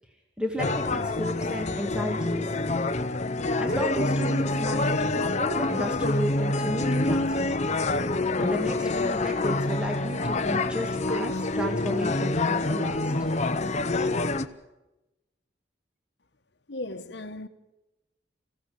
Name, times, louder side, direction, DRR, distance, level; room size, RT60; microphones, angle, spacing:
voice 1, 0.4-2.4 3.6-7.7 8.4-13.1, equal, 5° right, 2.1 m, -33 dB
sound 1, 0.6-14.5, left 2 dB, 40° left, 0.8 m, -26 dB
voice 2, 16.7-17.5, left 2 dB, 65° left, 1.3 m, -36 dB
27.0 x 16.0 x 8.3 m
head